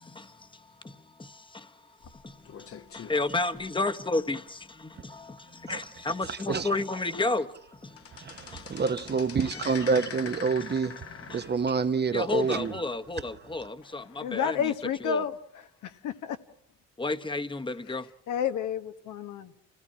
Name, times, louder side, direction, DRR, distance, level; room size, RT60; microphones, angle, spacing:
voice 1, 0.0-8.8 10.6-11.5 12.1-15.2 17.0-18.1, left 2 dB, 15° left, 1.1 m, -33 dB
sound 1, 2.0-4.2 4.7-4.9 5.2-5.3 5.9-6.0 6.6-6.7 7.0-7.4 7.7-13.2 13.5-13.6 14.4-14.5, left 7 dB, 50° left, 1.2 m, -44 dB
voice 2, 6.3-6.7 8.1-12.7, right 5 dB, 35° right, 0.9 m, -28 dB
voice 3, 14.2-15.3 16.0-16.4 18.3-19.5, left 8 dB, 80° left, 1.4 m, -30 dB
28.0 x 16.5 x 8.6 m
cardioid pair, 90°, 30 cm